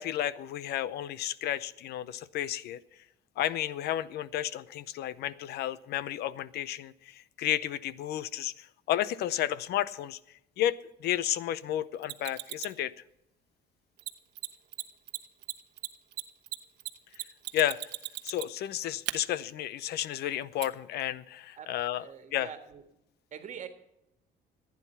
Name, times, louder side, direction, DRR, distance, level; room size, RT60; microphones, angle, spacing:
voice 1, 0.0-2.8 3.4-10.2 10.6-12.9 17.5-17.9 18.2-22.0 22.3-22.5, left 12 dB, 75° left, 18 dB, 0.7 m, -32 dB
Mechanisms, 12.0-12.8 14.0-14.1 14.4-14.5 14.7-14.8 15.1-18.7 19.1-19.2 20.6-20.7, right 16 dB, 85° right, 1.1 m, -36 dB
voice 2, 22.0-22.8 23.3-23.7, right 8 dB, 45° right, 7 dB, 1.6 m, -44 dB
15.0 x 9.6 x 5.6 m, 0.85 s
cardioid pair, 110°, 17 cm